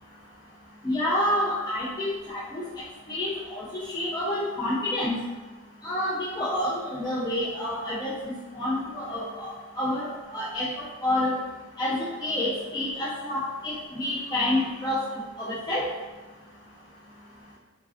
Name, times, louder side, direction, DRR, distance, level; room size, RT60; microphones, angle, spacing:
voice 1, 0.8-2.6 3.1-5.2 5.8-11.3 11.8-15.0 15.4-15.8, left 1 dB, 20° left, -9 dB, 0.3 m, -28 dB
3.2 x 2.3 x 2.4 m, 1.3 s
head